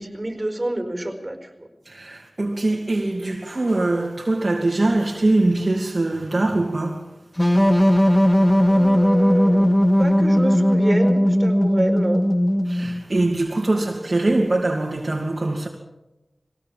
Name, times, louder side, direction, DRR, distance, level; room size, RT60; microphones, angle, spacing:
voice 1, 0.0-1.7 8.7-9.7 10.0-12.2, right 1 dB, 30° right, 4.8 m, -27 dB
voice 2, 1.8-7.1 7.7-7.9 12.6-15.7, right 2 dB, 45° right, 2.6 m, -22 dB
sound 1, 7.4-13.0, equal, 10° left, 2.0 m, -17 dB
22.0 x 17.0 x 7.5 m
cardioid pair, 45°, 0 cm